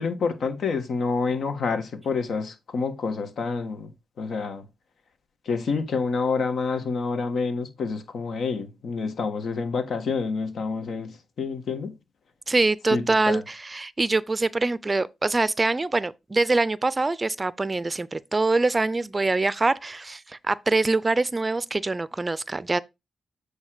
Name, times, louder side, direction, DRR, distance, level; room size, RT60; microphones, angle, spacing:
voice 1, 0.0-3.9 4.2-4.6 5.4-12.0 12.9-13.4, left 4 dB, 65° left, 1.5 m, -28 dB
voice 2, 12.5-22.8, right 3 dB, 30° right, 0.5 m, -24 dB
8.3 x 3.3 x 4.9 m
supercardioid pair, 50°, 0 cm